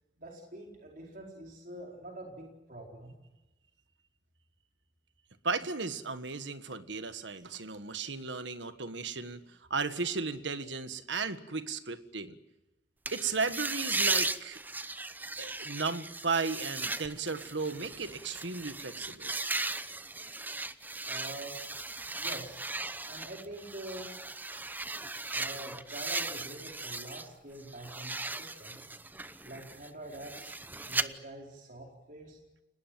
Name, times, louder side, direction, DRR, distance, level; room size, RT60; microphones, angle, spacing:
voice 1, 0.2-3.2 21.0-21.6 22.2-22.6 23.1-24.1 25.3-28.8 29.4-30.5 30.8-32.4, right 1 dB, 50° right, 0 dB, 4.4 m, -45 dB
voice 2, 5.4-12.4 13.1-14.6 15.4-19.3, right 4 dB, 75° right, 11 dB, 1.6 m, -35 dB
sound 1, 13.0-27.3 27.6-31.0, right 3 dB, 10° right, 0.8 m, -37 dB
30.0 x 19.0 x 7.7 m, 1.1 s
head